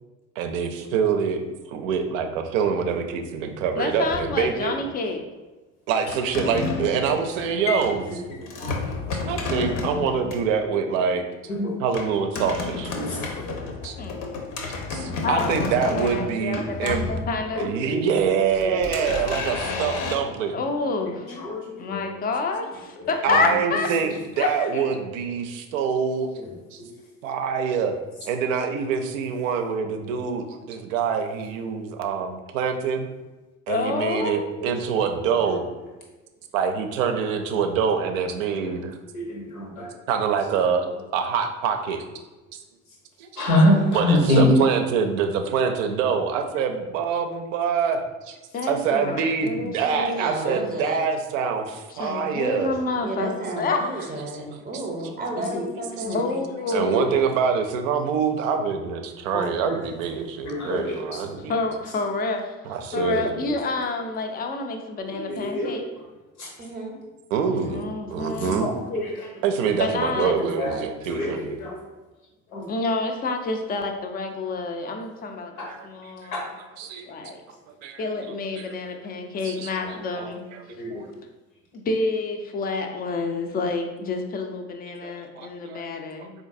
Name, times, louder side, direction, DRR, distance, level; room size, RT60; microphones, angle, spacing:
voice 1, 0.4-4.7 5.9-8.2 9.2-11.2 11.8-12.9 13.8-14.0 14.3-17.1 17.6-20.6 23.2-24.1 24.4-26.3 26.7-26.8 27.2-28.0 28.2-33.1 33.7-35.6 36.5-39.0 40.1-40.9 41.1-42.0 42.5-42.6 43.2-43.5 43.9-48.4 48.7-52.8 56.7-61.5 62.6-63.3 67.3-68.7 69.4-71.6 75.7-76.3 76.8-77.0 77.8-78.0 78.6-78.7 79.4-79.7 80.2-80.6 80.9-81.1 85.0-86.3, right 6 dB, 70° right, 5 dB, 0.5 m, -25 dB
voice 2, 3.8-5.2 13.9-14.2 15.2-17.7 20.5-21.3 21.8-23.9 24.4-24.7 33.7-34.4 44.1-44.7 48.5-50.3 51.9-54.1 56.1-57.2 61.5-62.5 62.9-65.8 67.5-68.6 69.7-70.4 72.7-75.5 75.8-76.5 77.0-77.4 78.0-80.4 81.7-86.3, left 3 dB, 25° left, 4 dB, 0.4 m, -28 dB
sound 1, 4.1-4.9 6.1-10.5 11.9-17.7 18.2-20.2, left 4 dB, 50° left, 0.7 m, -31 dB
voice 3, 12.9-13.6 17.5-18.0 18.6-19.1 21.4-21.6 21.9-22.0 23.0-23.1 34.6-34.7 35.4-35.5 38.7-38.8 39.1-39.9 43.4-44.5 55.5-55.6 56.0-56.2 59.3-59.8 60.1-60.9 62.9-63.5 65.0-65.7 66.4-66.5 67.6-67.7 68.6-69.3 70.2-70.8 71.1-71.7 72.5-72.7 75.6-75.7 76.3-76.4 79.8-79.9 80.7-81.0, left 1 dB, 80° left, -1 dB, 0.9 m, -26 dB
voice 4, 20.7-21.4 43.7-44.0 50.0-51.0 52.9-56.4 66.6-67.0, right 2 dB, 20° right, -1 dB, 0.7 m, -33 dB
3.8 x 2.5 x 2.5 m, 1.2 s
figure-of-eight pair, 60°, 42 cm